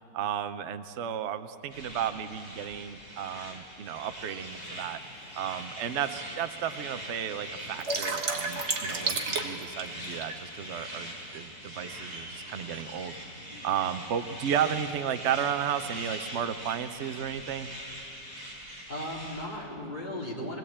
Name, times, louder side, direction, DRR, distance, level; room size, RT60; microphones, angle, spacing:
voice 1, 0.1-5.0 5.4-13.1 13.6-17.7, right 9 dB, 55° right, 10 dB, 0.8 m, -33 dB
sound 1, 1.7-19.5, equal, 20° right, 4.8 m, -42 dB
sound 2, 4.5-4.6 5.4-5.5 5.9-6.0 6.2-6.8 7.2-10.3, right 3 dB, 40° right, 1.6 m, -31 dB
voice 2, 18.9-20.6, left 1 dB, 25° left, -3 dB, 3.4 m, -37 dB
21.5 x 16.5 x 8.6 m, 2.6 s
omnidirectional pair, 1.9 m